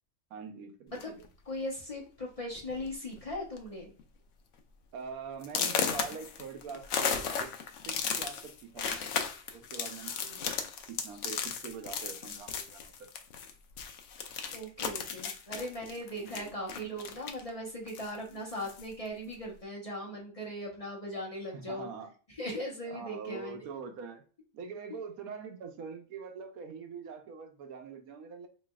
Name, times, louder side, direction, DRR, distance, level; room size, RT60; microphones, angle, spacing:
voice 1, 0.3-1.2 4.9-7.5 7.8-9.0 9.5-13.1 16.1-16.5 21.5-22.1 22.8-24.2 24.5-28.5, right 5 dB, 90° right, 6 dB, 1.2 m, -44 dB
sound 1, 0.9-1.3 2.1-2.2 2.6-2.8 3.1-3.6 4.0-4.1 4.6-4.7 5.4-13.5 13.8-17.5 17.9-18.9, left 6 dB, 65° left, 0.9 m, -35 dB
voice 2, 1.5-3.9 14.5-21.9 22.4-23.6, equal, 35° left, -2 dB, 0.7 m, -39 dB
4.0 x 3.2 x 2.3 m, 0.40 s
omnidirectional pair, 1.5 m